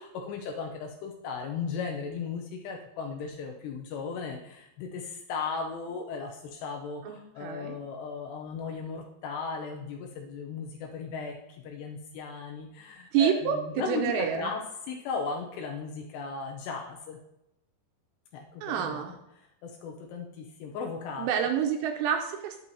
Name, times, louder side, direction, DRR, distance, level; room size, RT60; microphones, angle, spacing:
voice 1, 0.0-14.6 14.9-17.2 18.3-21.5, left 5 dB, 85° left, 1 dB, 2.9 m, -36 dB
voice 2, 7.1-7.8 13.1-14.5 18.6-19.1 21.2-22.6, right 8 dB, 85° right, 4 dB, 2.8 m, -28 dB
8.7 x 8.2 x 2.8 m, 0.83 s
omnidirectional pair, 4.9 m